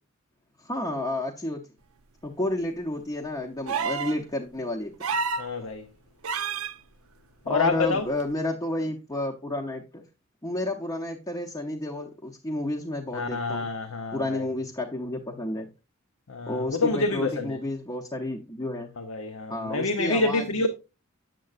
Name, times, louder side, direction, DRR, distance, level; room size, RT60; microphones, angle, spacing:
voice 1, 0.6-1.6 2.2-4.9 7.5-10.0 10.4-13.7 14.1-15.7 16.5-18.9 19.5-20.7, left 1 dB, 20° left, 0.7 m, -31 dB
sound 1, 3.7-4.2 5.0-5.5 6.2-6.7 8.2-8.3, right 5 dB, 80° right, 0.6 m, -28 dB
voice 2, 5.4-5.8 7.5-8.1 13.1-14.5 16.3-17.6 19.0-20.7, left 3 dB, 75° left, 0.7 m, -27 dB
7.6 x 7.4 x 2.4 m
head